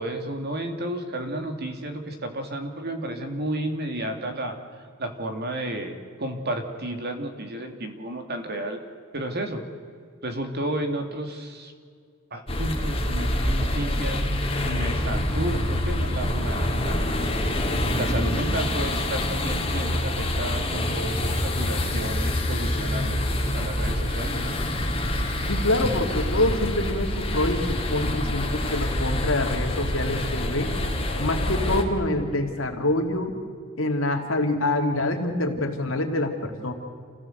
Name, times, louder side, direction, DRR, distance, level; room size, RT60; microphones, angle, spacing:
voice 1, 0.0-4.6 5.0-8.8 9.1-9.6 10.2-11.7 12.3-17.1 18.0-24.6, right 1 dB, 55° right, 6 dB, 2.4 m, -32 dB
sound 1, 12.5-31.8, left 1 dB, 30° left, 2.8 m, -26 dB
voice 2, 25.5-30.7 31.2-33.3 33.8-36.7, left 1 dB, 90° left, 3 dB, 2.6 m, -26 dB
28.0 x 16.0 x 7.9 m, 2.1 s
head